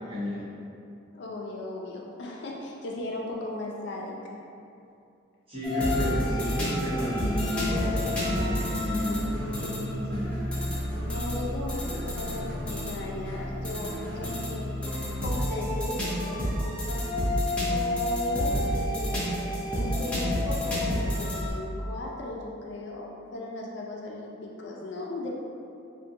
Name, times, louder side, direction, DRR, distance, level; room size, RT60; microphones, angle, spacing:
voice 1, 0.0-0.4 5.5-10.3, left 1 dB, 30° right, -12 dB, 1.0 m, -31 dB
voice 2, 1.1-4.4 10.9-14.8 15.2-17.1 17.7-25.3, left 2 dB, 65° left, -2 dB, 0.4 m, -37 dB
sound 1, 5.6-21.5, left 1 dB, 5° left, 0.6 m, -30 dB
3.5 x 2.2 x 2.7 m, 2.6 s
head